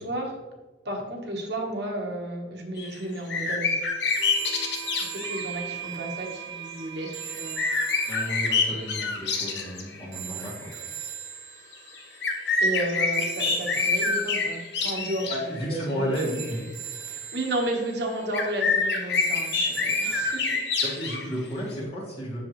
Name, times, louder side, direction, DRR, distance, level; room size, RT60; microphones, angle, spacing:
voice 1, 0.0-0.3 0.8-3.8 5.0-7.6 12.6-16.1 17.1-20.6, right 1 dB, 60° right, 0 dB, 1.3 m, -32 dB
sound 1, 2.8-3.0 3.3-5.6 7.0-10.1 10.4-10.5 11.7-15.6 16.4-16.5 18.3-21.2, left 4 dB, 60° left, 1.0 m, -26 dB
sound 2, 4.1-21.0, right 9 dB, 85° right, 1.4 m, -42 dB
sound 3, 4.2-9.5, right 8 dB, 20° right, 0.7 m, -40 dB
voice 2, 8.1-10.7 15.3-16.6 20.8-22.4, equal, 30° left, -5 dB, 2.2 m, -32 dB
7.8 x 6.9 x 3.1 m, 1.2 s
head